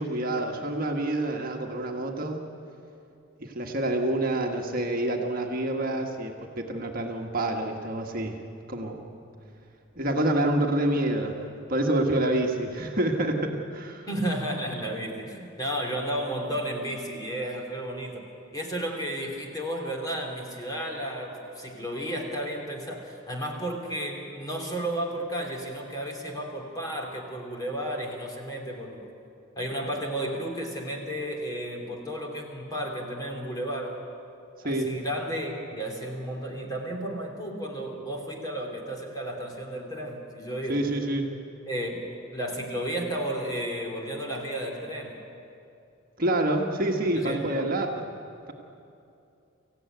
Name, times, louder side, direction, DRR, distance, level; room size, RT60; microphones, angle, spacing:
voice 1, 0.0-2.5 3.4-8.4 8.7-9.0 10.0-11.4 11.7-14.1 34.6-34.9 40.7-41.3 46.2-47.9, right 1 dB, 40° right, 1 dB, 1.6 m, -27 dB
voice 2, 14.1-18.2 18.5-29.0 29.6-34.0 34.6-40.9 41.7-45.2 47.1-47.7, right 1 dB, 15° left, 1 dB, 2.8 m, -33 dB
24.5 x 15.5 x 9.2 m, 2.6 s
head